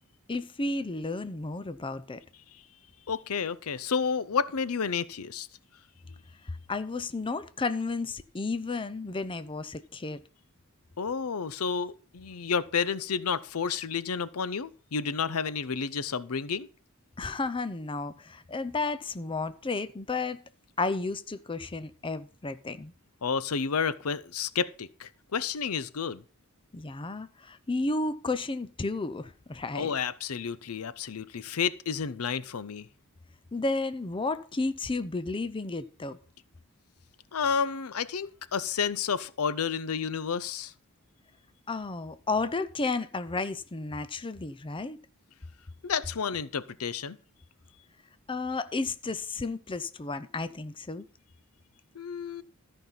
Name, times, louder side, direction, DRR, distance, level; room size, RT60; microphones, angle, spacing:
voice 1, 0.3-2.2 6.5-10.2 17.2-20.4 20.8-22.9 26.7-29.9 33.5-36.2 41.7-45.0 48.3-51.1, left 3 dB, 25° left, 0.6 m, -32 dB
voice 2, 3.1-5.5 11.0-16.7 23.2-26.2 29.7-32.9 37.3-40.7 45.8-47.2 51.9-52.4, left 6 dB, 75° left, 0.6 m, -31 dB
13.5 x 5.5 x 5.7 m
head